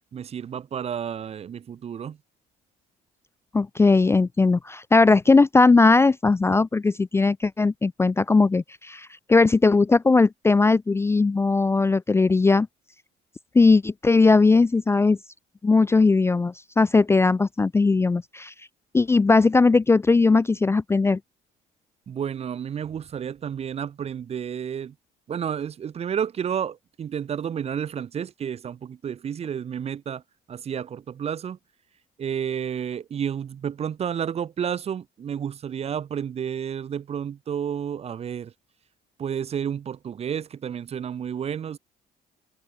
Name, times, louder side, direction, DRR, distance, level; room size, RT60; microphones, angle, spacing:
voice 1, 0.1-2.2 22.1-24.9 25.3-30.2 30.5-31.6 32.2-38.5 39.2-41.8, right 8 dB, 40° right, 0.7 m, -31 dB
voice 2, 3.5-12.7 13.5-15.2 15.6-18.5 18.9-21.2, left 3 dB, 15° left, 0.4 m, -19 dB
cardioid pair, 110°, 17 cm